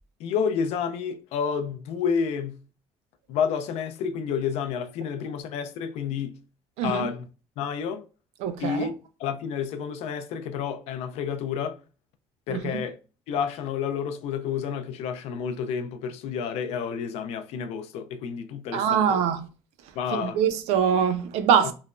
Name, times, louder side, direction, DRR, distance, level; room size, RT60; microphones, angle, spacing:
voice 1, 0.2-2.6 3.3-6.4 6.8-7.3 7.6-8.1 8.6-11.8 12.5-13.0 13.3-19.2 19.9-20.4 21.6-21.7, left 7 dB, 70° left, 0.4 m, -30 dB
voice 2, 6.8-7.1 8.4-8.9 12.5-12.8 18.7-19.5 20.1-21.7, right 7 dB, 70° right, 0.4 m, -23 dB
3.0 x 2.1 x 2.4 m
cardioid pair, 155°, 11 cm